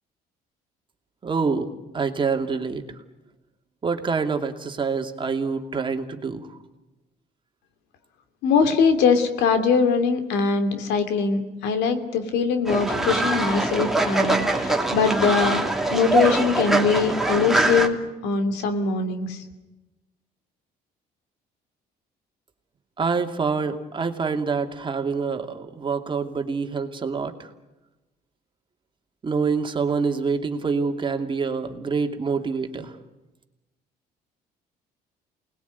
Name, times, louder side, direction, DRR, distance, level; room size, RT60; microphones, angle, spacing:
voice 1, 1.2-1.7 1.9-2.8 3.8-6.5 23.0-27.3 29.2-32.9, right 5 dB, 30° right, 5 dB, 2.7 m, -26 dB
voice 2, 8.4-15.6 15.9-18.0 18.2-19.4, left 5 dB, 90° left, 8 dB, 2.9 m, -22 dB
Fowl, 12.7-17.9, right 2 dB, ahead, 2.8 m, -23 dB
28.5 x 20.5 x 9.5 m, 1.0 s
cardioid pair, 110°, 17 cm